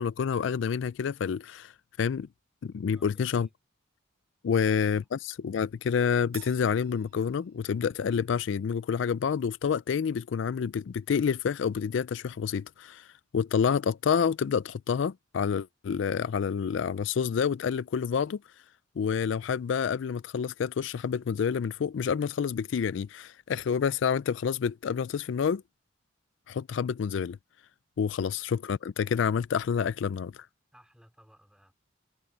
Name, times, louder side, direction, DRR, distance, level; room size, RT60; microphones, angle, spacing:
voice 1, 0.0-1.7 2.0-2.3 2.6-3.5 4.4-13.1 13.3-18.4 19.0-25.6 26.5-27.4 28.0-30.5, left 6 dB, 70° left, 0.4 m, -28 dB
voice 2, 2.9-3.5 4.5-4.8 27.9-28.3 30.7-31.8, equal, 5° right, 3.8 m, -59 dB
Crash cymbal, 6.3-8.0, right 11 dB, 50° right, 1.1 m, -50 dB
head